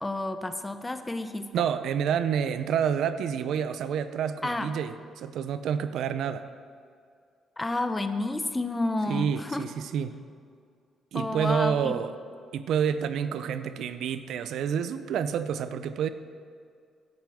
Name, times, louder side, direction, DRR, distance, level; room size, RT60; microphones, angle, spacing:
voice 1, 0.0-1.5 4.4-4.7 7.6-9.6 11.1-11.9, left 2 dB, 15° left, 9 dB, 0.8 m, -30 dB
voice 2, 1.5-6.4 9.1-10.2 11.1-12.1 12.5-16.1, right 8 dB, 75° right, 11 dB, 0.6 m, -28 dB
17.0 x 10.5 x 3.6 m, 2.2 s
cardioid pair, 90°, 0 cm